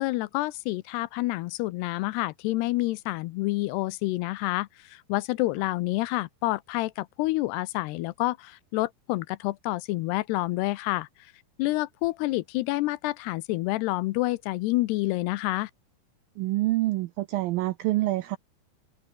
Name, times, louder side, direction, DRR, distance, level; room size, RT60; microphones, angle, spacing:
voice 1, 0.0-11.1 11.6-15.7, left 19 dB, 80° left, 2.6 m, -28 dB
voice 2, 16.4-18.4, right 17 dB, 85° right, 2.1 m, -26 dB
omnidirectional pair, 4.9 m